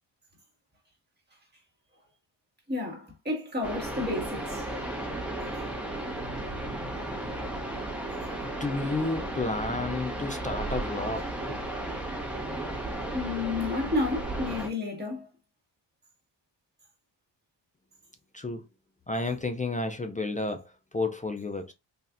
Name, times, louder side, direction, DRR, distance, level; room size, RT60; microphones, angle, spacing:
voice 1, 2.7-4.6 13.1-15.3, left 3 dB, 20° right, 1.9 m, -31 dB
sound 1, 3.6-14.7, right 1 dB, 5° right, 1.5 m, -34 dB
voice 2, 8.4-11.6 18.3-18.6 19.1-21.7, left 2 dB, 20° left, 0.4 m, -31 dB
4.2 x 3.1 x 2.4 m
wide cardioid pair, 125°, 45 cm